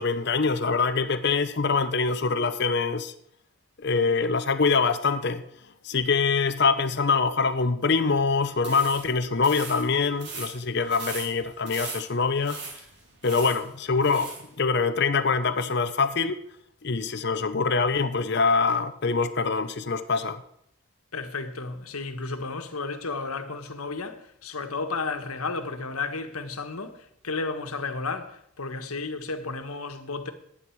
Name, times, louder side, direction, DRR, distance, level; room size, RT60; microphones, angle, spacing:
voice 1, 0.0-3.1 3.8-5.4 5.8-12.8 13.2-14.3 14.6-16.4 16.8-20.4, left 4 dB, 50° left, 0.7 m, -24 dB
sound 1, 8.6-14.5, right 4 dB, 50° right, 3.2 m, -40 dB
voice 2, 21.1-30.3, left 4 dB, 90° left, 1.4 m, -33 dB
16.0 x 10.0 x 4.6 m
head